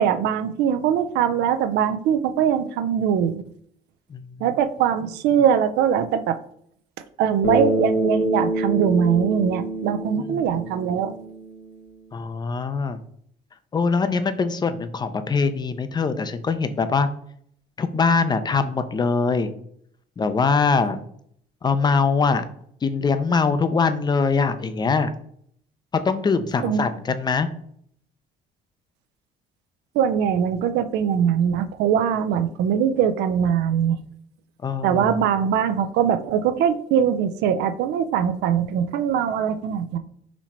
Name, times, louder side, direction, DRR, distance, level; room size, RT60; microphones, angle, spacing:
voice 1, 0.0-3.4 4.4-6.4 7.2-11.1 26.6-26.9 30.0-34.0 34.8-40.0, right 8 dB, 85° right, 11 dB, 0.4 m, -22 dB
Bass guitar, 7.4-11.8, right 1 dB, 70° left, 1.0 m, -26 dB
voice 2, 12.1-13.0 13.7-17.1 17.8-19.5 20.2-21.0 21.6-22.4 22.8-25.1 26.0-27.5 34.6-35.1, left 4 dB, 25° left, 11 dB, 0.4 m, -22 dB
4.1 x 3.0 x 4.3 m, 0.66 s
cardioid pair, 110°, 17 cm